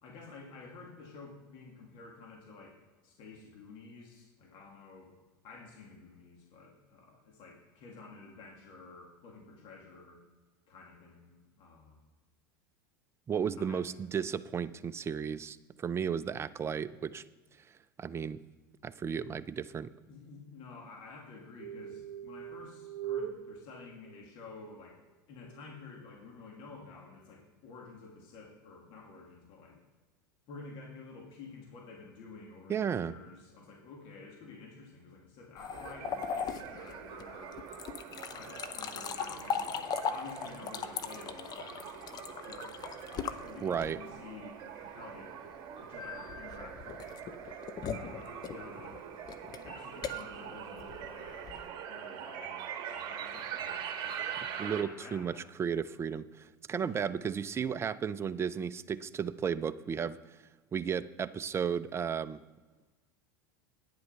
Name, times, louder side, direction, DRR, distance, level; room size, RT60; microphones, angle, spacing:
voice 1, 0.0-5.1 5.4-10.2 10.7-12.0 13.6-13.8 20.1-25.0 25.3-29.8 30.5-37.6 38.1-44.6 44.8-45.4 45.8-47.2 47.9-49.0 49.6-55.4 56.8-57.3, left 4 dB, 55° left, -1 dB, 2.4 m, -51 dB
voice 2, 13.3-17.2 18.0-18.4 18.8-19.9 32.7-33.1 43.6-44.0 54.6-55.3 55.6-60.4 60.7-62.4, right 7 dB, 25° right, 14 dB, 0.5 m, -34 dB
sound 1, 21.6-24.5 25.4-25.9, right 9 dB, 75° right, 1.0 m, -42 dB
sound 2, 35.6-44.2 46.0-51.7, left 7 dB, 35° left, 0.7 m, -39 dB
sound 3, 35.7-54.8, right 8 dB, 50° right, 1.4 m, -43 dB
9.7 x 7.8 x 5.6 m, 1.3 s
hypercardioid pair, 95°, 11 cm